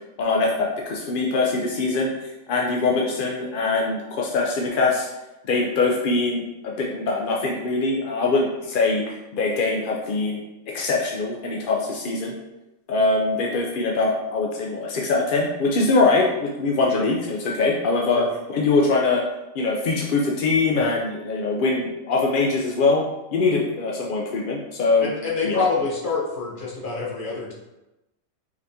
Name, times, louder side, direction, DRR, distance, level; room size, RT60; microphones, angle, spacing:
voice 1, 0.2-2.1 2.5-5.1 5.5-9.0 9.3-10.4 10.7-12.3 12.9-18.2 18.5-19.2 19.5-23.1 23.3-25.1 25.4-25.7, left 3 dB, 60° left, -1 dB, 0.5 m, -22 dB
voice 2, 25.0-27.5, left 4 dB, 40° left, -5 dB, 1.1 m, -26 dB
5.0 x 3.4 x 2.7 m, 0.97 s
omnidirectional pair, 1.5 m